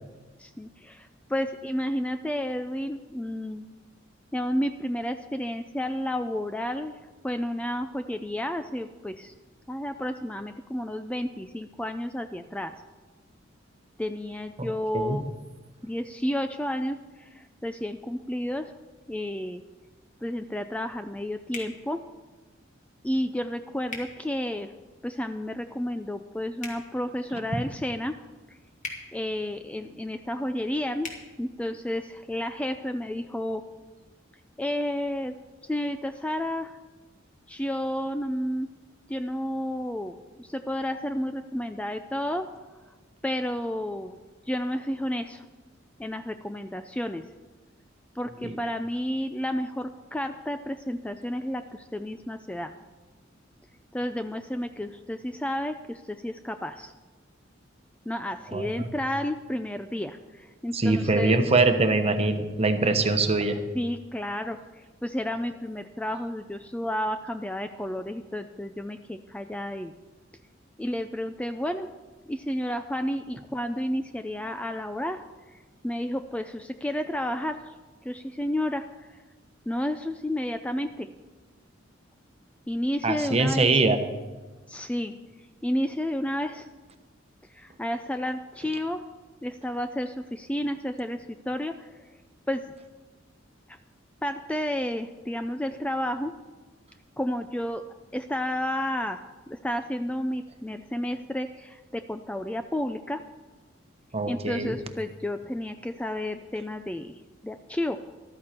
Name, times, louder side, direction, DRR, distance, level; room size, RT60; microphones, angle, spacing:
voice 1, 0.4-3.7 4.3-7.0 7.2-9.3 9.7-12.7 14.0-15.2 15.8-18.7 19.1-19.6 20.2-22.0 23.0-24.7 25.0-28.2 28.5-28.6 29.1-31.1 31.4-33.6 34.6-35.4 35.7-36.8 37.5-38.7 39.1-42.5 43.2-44.2 44.5-45.4 46.0-47.2 48.2-52.7 53.9-56.9 58.1-61.4 63.7-69.9 70.8-71.9 72.3-75.2 75.5-75.6 75.8-77.7 78.0-79.2 79.7-81.1 82.7-83.8 84.7-85.1 85.6-86.7 87.5-89.0 89.4-91.9 92.5-92.6 93.7-93.8 94.2-96.3 97.2-97.8 98.1-103.2 104.3-108.0, left 1 dB, 5° left, 8 dB, 0.4 m, -31 dB
sound 1, 21.5-21.7 23.9-24.1 26.6-26.8 28.8-29.0 31.0-31.2, left 3 dB, 40° left, 2.3 m, -37 dB
voice 2, 58.5-58.9 60.7-63.6 83.0-84.0 104.1-104.7, right 3 dB, 35° right, 7 dB, 1.1 m, -23 dB
14.0 x 13.0 x 4.4 m, 1.3 s
head